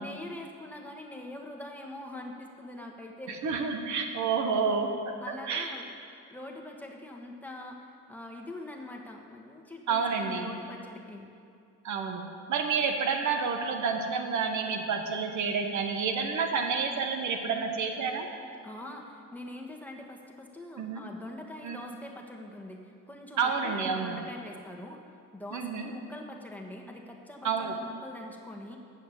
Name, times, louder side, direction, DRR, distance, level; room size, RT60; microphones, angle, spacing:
voice 1, 0.0-3.4 5.2-5.9 6.3-11.3 18.6-25.0 25.3-28.8, left 1 dB, 5° left, 0 dB, 1.3 m, -43 dB
voice 2, 3.3-4.9 5.5-5.7 9.9-10.5 11.8-12.2 12.5-18.3 20.8-21.1 21.6-21.8 23.4-24.2 25.5-25.9 27.4-27.7, right 5 dB, 70° right, 4 dB, 1.2 m, -29 dB
8.1 x 6.7 x 8.4 m, 2.4 s
cardioid pair, 90°, 30 cm